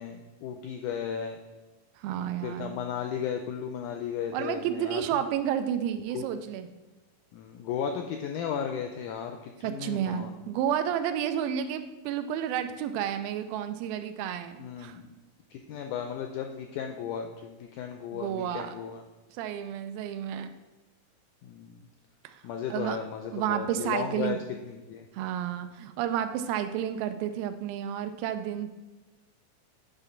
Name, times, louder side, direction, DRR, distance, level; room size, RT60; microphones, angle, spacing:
voice 1, 0.0-1.4 2.4-5.0 6.1-6.3 7.3-10.3 14.6-15.0 15.5-19.0 21.4-21.8 22.4-24.4 24.6-25.1, left 8 dB, 85° left, 5 dB, 1.8 m, -35 dB
voice 2, 2.0-2.8 4.3-6.7 9.6-15.0 18.1-18.7 19.4-20.5 22.2-22.4 22.7-23.0 23.3-24.4 25.1-28.7, right 10 dB, 90° right, 9 dB, 2.4 m, -31 dB
9.0 x 3.6 x 5.7 m, 1.2 s
omnidirectional pair, 4.1 m